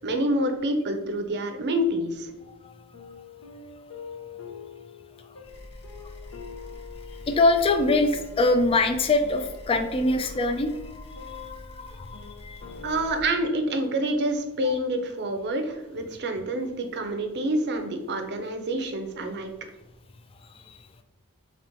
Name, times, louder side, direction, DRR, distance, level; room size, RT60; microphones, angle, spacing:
voice 1, 0.0-2.3 12.8-19.5, right 1 dB, 50° right, 6 dB, 0.5 m, -27 dB
sound 1, 2.3-14.4, left 5 dB, 75° left, 0.6 m, -45 dB
sound 2, 5.4-13.2, left 1 dB, 55° left, 0.9 m, -45 dB
voice 2, 7.3-12.6 14.7-14.8, left 2 dB, 25° left, 7 dB, 0.3 m, -24 dB
3.0 x 3.0 x 4.3 m, 0.98 s
head